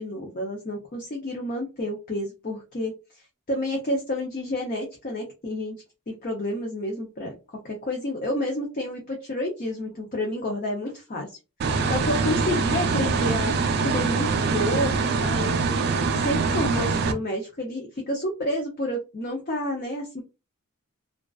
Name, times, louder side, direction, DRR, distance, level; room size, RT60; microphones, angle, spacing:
voice 1, 0.0-2.9 3.5-5.7 6.1-7.3 7.6-11.4 11.9-13.5 13.8-14.9 15.2-15.6 16.1-20.2, left 1 dB, 40° left, 0 dB, 0.5 m, -29 dB
sound 1, 11.6-17.1, right 4 dB, 45° right, 0.3 m, -24 dB
2.3 x 2.3 x 2.3 m, 0.28 s
head